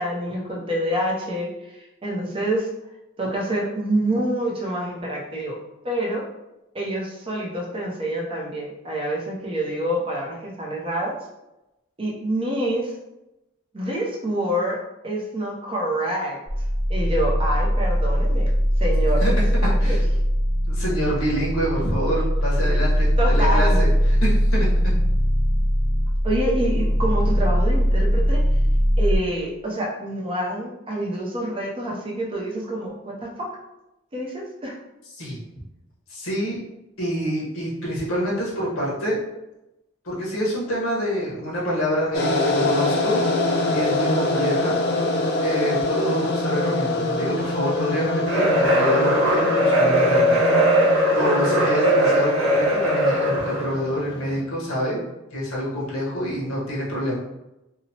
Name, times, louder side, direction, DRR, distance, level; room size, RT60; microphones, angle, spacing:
voice 1, 0.0-2.7 3.2-5.6 5.8-6.2 6.7-11.2 12.0-12.9 13.7-14.8 15.0-16.4 16.9-18.5 18.8-19.2 19.6-20.0 23.2-23.8 26.2-28.4 29.0-33.5 34.1-34.8, right 1 dB, 25° right, -3 dB, 0.5 m, -27 dB
sound 1, 16.5-29.2, equal, 10° left, 1.0 m, -20 dB
voice 2, 20.7-24.9 35.2-35.4 36.1-36.6 37.0-39.2 40.0-44.8 45.4-50.4 50.8-55.0 55.3-57.2, equal, 80° left, -4 dB, 1.0 m, -27 dB
sound 2, 42.1-54.4, left 2 dB, 50° left, 0.3 m, -25 dB
sound 3, 48.3-53.7, equal, 60° right, 0.9 m, -19 dB
2.8 x 2.0 x 2.7 m, 0.93 s
head